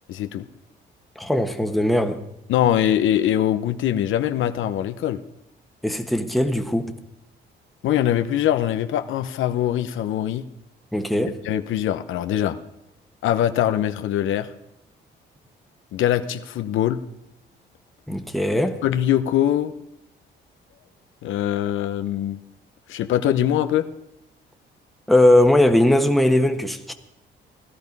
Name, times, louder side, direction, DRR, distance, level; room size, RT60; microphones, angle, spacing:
voice 1, 0.1-0.5 2.5-5.2 7.8-10.4 11.4-12.6 13.2-14.5 15.9-17.0 18.8-19.7 21.2-22.4 22.9-23.9, left 11 dB, 80° left, 0.8 m, -22 dB
voice 2, 1.2-2.2 5.8-7.0 10.9-11.4 18.1-18.8 25.1-26.9, left 1 dB, ahead, 1.3 m, -19 dB
16.0 x 12.0 x 5.4 m
cardioid pair, 90°, 20 cm